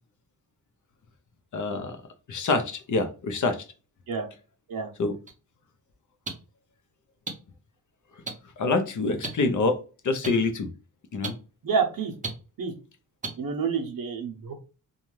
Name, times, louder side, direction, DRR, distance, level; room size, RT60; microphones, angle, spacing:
voice 1, 1.5-1.9 2.3-3.6 5.0-5.1 8.6-9.8 10.0-10.7 11.1-11.3, left 3 dB, 50° left, 7 dB, 0.6 m, -25 dB
sound 1, 5.3-5.4 6.3-6.4 7.3-7.4 8.3-8.4 9.2-9.3 10.2-10.3 11.2-11.3 12.2-12.3 13.2-13.3, right 3 dB, 20° right, 0.5 m, -31 dB
voice 2, 11.6-12.1 12.6-12.7 13.4-14.5, right 5 dB, 60° right, 1 dB, 0.7 m, -28 dB
2.6 x 2.3 x 3.0 m, 0.34 s
wide cardioid pair, 155°, 38 cm